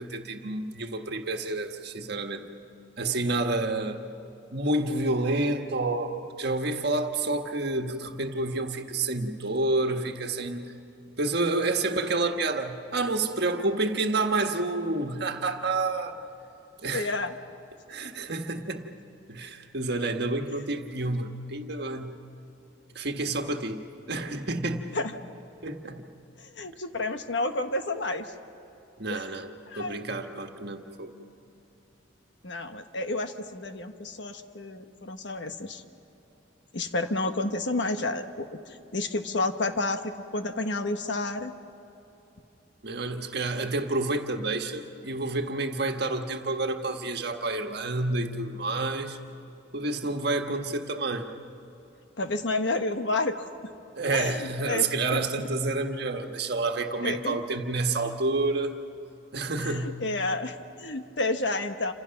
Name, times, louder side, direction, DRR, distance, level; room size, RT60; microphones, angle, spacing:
voice 1, 0.0-2.5 3.0-4.0 4.5-10.6 11.2-16.2 16.8-17.1 17.9-18.9 19.3-22.1 22.9-24.9 25.6-26.1 29.0-29.5 29.8-31.1 42.8-49.2 49.7-51.3 54.0-58.7 59.3-60.1, right 2 dB, 60° right, 5 dB, 1.5 m, -29 dB
voice 2, 16.9-17.3 24.9-25.2 26.4-28.3 29.1-29.2 29.7-30.0 32.4-35.8 36.7-41.5 52.2-53.5 54.1-55.2 57.0-57.4 58.0-58.1 59.6-61.9, left 2 dB, 65° left, 7 dB, 1.3 m, -30 dB
28.5 x 26.5 x 5.9 m, 2.9 s
head